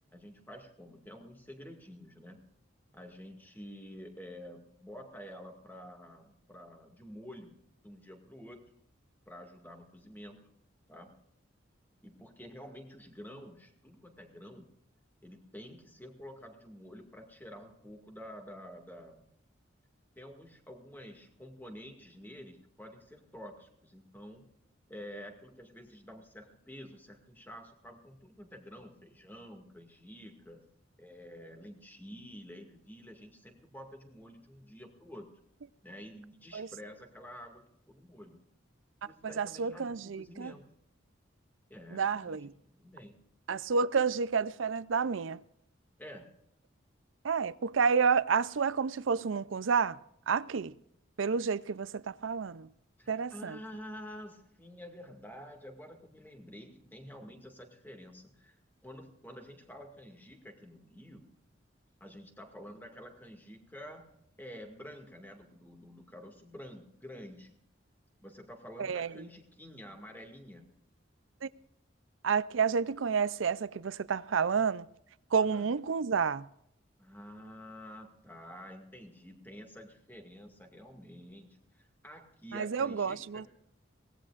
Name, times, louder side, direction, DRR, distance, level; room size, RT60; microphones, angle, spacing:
voice 1, 0.1-2.4 2.9-7.5 7.8-8.7 9.3-10.5 10.9-11.2 12.0-14.7 15.2-19.2 20.2-24.5 24.9-30.6 31.0-35.3 35.8-38.4 39.0-40.7 41.7-42.4 42.6-43.2 46.0-46.3 53.0-58.6 58.8-61.3 62.0-67.5 68.2-70.6 75.3-75.7 77.0-83.4, equal, 10° left, 2.1 m, -49 dB
voice 2, 39.2-40.5 41.9-42.5 43.5-45.4 47.2-50.0 50.3-50.8 51.2-52.7 53.1-53.6 68.8-69.1 71.4-71.5 72.2-74.9 75.3-76.5 82.5-83.4, right 5 dB, 80° right, 0.5 m, -30 dB
23.5 x 18.5 x 2.5 m
head